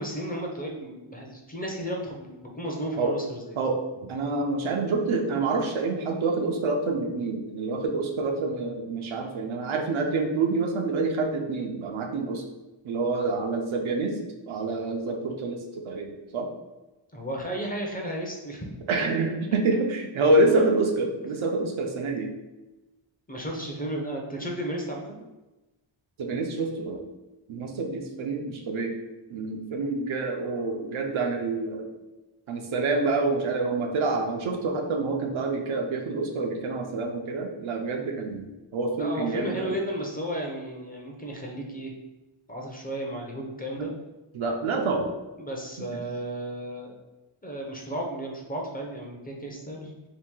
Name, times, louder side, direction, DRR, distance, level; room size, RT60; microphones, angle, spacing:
voice 1, 0.0-3.6 17.1-18.7 23.3-25.2 39.0-41.9 42.5-43.9 45.4-46.9 47.4-49.9, right 1 dB, 20° left, -1 dB, 0.5 m, -34 dB
voice 2, 3.6-12.4 12.8-14.2 14.5-16.5 18.9-22.3 26.2-27.0 27.5-28.9 29.3-31.9 32.5-39.7 43.8-43.9 44.3-45.1 45.9-46.0, right 3 dB, 75° right, 2 dB, 0.7 m, -27 dB
2.9 x 2.6 x 3.6 m, 1.1 s
wide cardioid pair, 115°, 48 cm